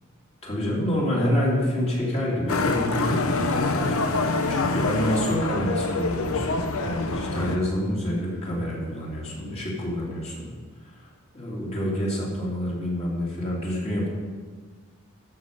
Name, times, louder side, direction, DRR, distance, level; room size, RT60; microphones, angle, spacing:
voice 1, 0.4-4.0 4.5-10.5 10.9-11.1 11.3-14.1, equal, 30° left, -5 dB, 3.1 m, -27 dB
Motorcycle, 2.5-7.6, left 3 dB, 70° left, 0.9 m, -26 dB
13.5 x 7.5 x 5.4 m, 1.5 s
head